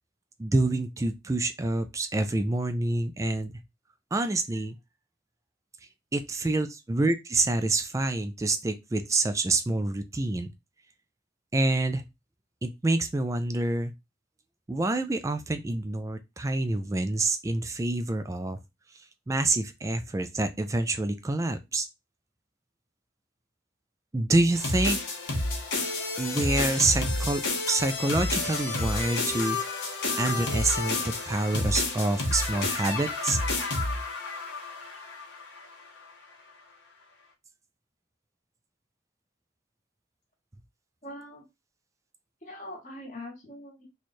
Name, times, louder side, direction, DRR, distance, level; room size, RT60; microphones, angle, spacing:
voice 1, 0.4-3.5 4.1-4.8 6.1-10.5 11.5-12.0 12.6-13.9 14.7-18.6 19.3-21.9 24.1-25.0 26.2-29.8 30.2-33.4, right 2 dB, 15° right, 0.3 m, -27 dB
sound 1, 24.5-35.6, left 2 dB, 70° left, 1.0 m, -30 dB
voice 2, 41.0-41.4 42.4-43.9, left 1 dB, 40° left, 1.3 m, -42 dB
3.1 x 2.4 x 4.1 m
head